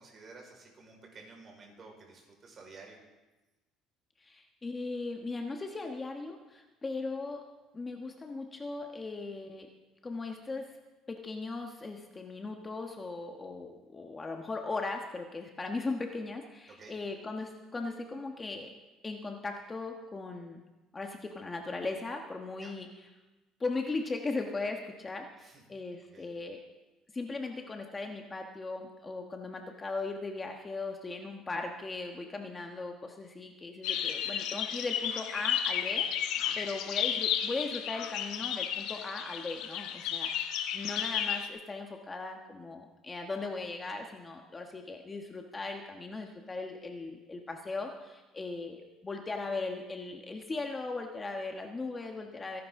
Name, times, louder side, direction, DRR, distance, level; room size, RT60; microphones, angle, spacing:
voice 1, 0.0-3.0 16.8-16.9 22.6-22.7 25.4-25.6 26.0-26.3 36.4-36.6, right 3 dB, 35° right, 1 dB, 4.8 m, -52 dB
voice 2, 4.2-7.4 7.7-9.7 10.0-10.7 11.1-18.7 19.0-20.6 20.9-23.1 23.6-26.6 27.1-36.3 36.6-40.3 40.7-52.6, left 3 dB, 20° left, 3 dB, 1.3 m, -38 dB
sound 1, 33.8-41.5, left 9 dB, 75° left, 1.3 m, -33 dB
26.5 x 11.5 x 3.7 m, 1.1 s
cardioid pair, 125°, 0 cm